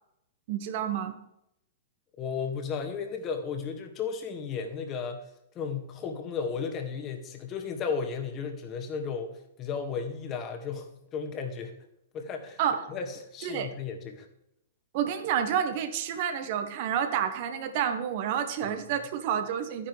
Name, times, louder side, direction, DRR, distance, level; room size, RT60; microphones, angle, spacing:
voice 1, 0.5-1.2 12.6-12.8 13.4-13.7 14.9-19.9, right 9 dB, 50° right, 8 dB, 1.4 m, -29 dB
voice 2, 2.2-5.2 5.6-11.7 12.1-12.6 12.9-14.3 18.7-18.8, left 6 dB, 30° left, 4 dB, 2.0 m, -34 dB
12.5 x 9.9 x 3.4 m, 0.79 s
figure-of-eight pair, 110°, 0 cm